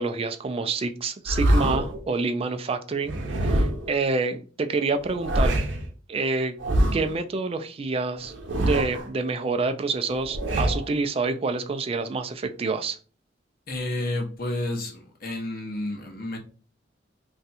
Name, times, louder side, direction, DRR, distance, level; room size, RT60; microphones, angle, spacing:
voice 1, 0.0-5.5 6.1-6.5 6.9-8.3 8.6-13.0, right 3 dB, 30° right, 8 dB, 0.4 m, -27 dB
sound 1, 1.3-2.0 3.0-4.0 5.0-5.9 6.6-7.2 8.2-9.1 10.1-10.9, right 1 dB, 85° right, 0.7 m, -25 dB
voice 2, 13.7-16.4, left 1 dB, 55° left, 1 dB, 0.9 m, -30 dB
2.6 x 2.3 x 4.1 m, 0.38 s
head